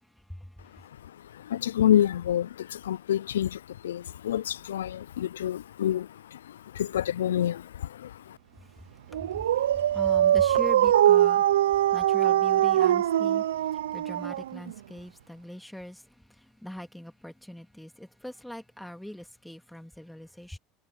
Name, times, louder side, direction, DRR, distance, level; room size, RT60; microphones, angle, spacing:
voice 1, 1.3-8.4, left 11 dB, 80° left, 0.4 m, -28 dB
Dog, 9.1-14.8, right 12 dB, 80° right, 0.5 m, -22 dB
voice 2, 9.9-11.4 11.9-13.4 13.9-16.0 16.6-20.6, equal, 5° left, 2.8 m, -41 dB
hypercardioid pair, 75°, 0 cm